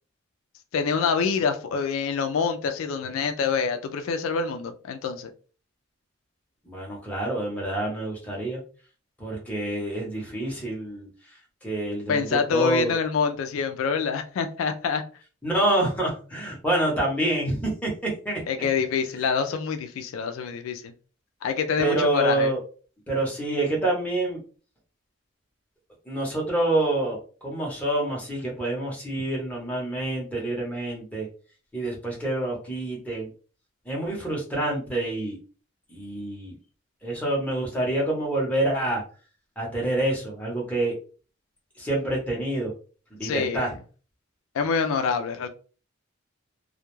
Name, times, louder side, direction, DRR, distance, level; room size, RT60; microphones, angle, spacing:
voice 1, 0.7-5.3 12.1-15.0 18.5-20.9 21.4-22.5 43.2-43.7 44.5-45.5, left 5 dB, 80° left, 0.3 m, -26 dB
voice 2, 6.7-8.6 9.2-11.1 11.6-12.9 15.4-18.4 21.8-22.6 23.1-24.4 26.1-27.2 27.4-31.3 31.7-33.3 33.9-35.4 35.9-36.5 37.0-39.0 39.6-40.9 41.8-42.7 43.1-43.7, right 1 dB, 5° left, 0.8 m, -27 dB
2.2 x 2.1 x 3.0 m
head